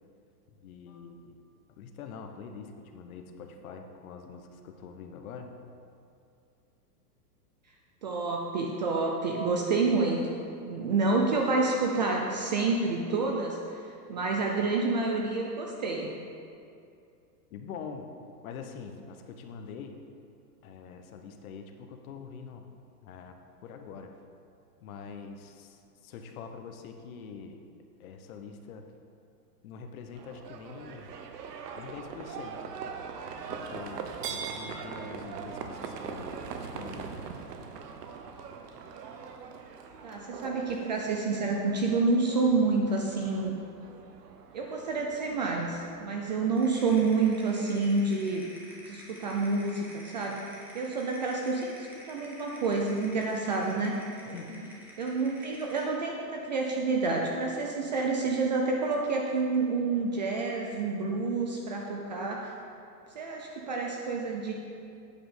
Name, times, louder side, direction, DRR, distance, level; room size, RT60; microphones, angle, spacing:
voice 1, 0.5-1.3 1.8-5.5 17.5-18.1 18.4-20.0 20.6-22.7 23.0-23.4 23.6-24.1 24.8-27.6 28.0-28.9 29.6-31.1 31.7-32.7 33.5-37.1 54.3-54.8, left 6 dB, 55° left, 5 dB, 1.1 m, -44 dB
voice 2, 8.0-10.4 10.7-13.8 14.1-16.1 40.0-43.6 44.5-48.5 48.9-50.5 50.7-54.0 54.3-54.4 55.0-62.5 63.1-64.5, right 3 dB, 30° right, 0 dB, 0.4 m, -28 dB
Livestock farm animals working animals, 30.2-46.6, right 6 dB, 70° right, 1.0 m, -42 dB
sound 1, 46.6-55.9, equal, 5° right, 1.0 m, -50 dB
8.8 x 7.4 x 5.0 m, 2.5 s
supercardioid pair, 155°, 50 cm